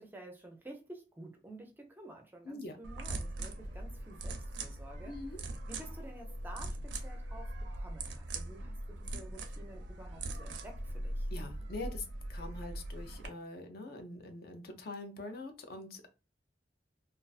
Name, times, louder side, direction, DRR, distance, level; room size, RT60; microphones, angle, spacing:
voice 1, 0.0-5.2 5.7-11.3, right 1 dB, 10° right, 0.4 m, -51 dB
voice 2, 2.4-2.8 5.1-5.4 11.3-16.1, left 2 dB, 60° left, 0.5 m, -44 dB
sound 1, 2.8-13.3, right 1 dB, 85° right, 0.5 m, -41 dB
2.3 x 2.3 x 2.3 m
head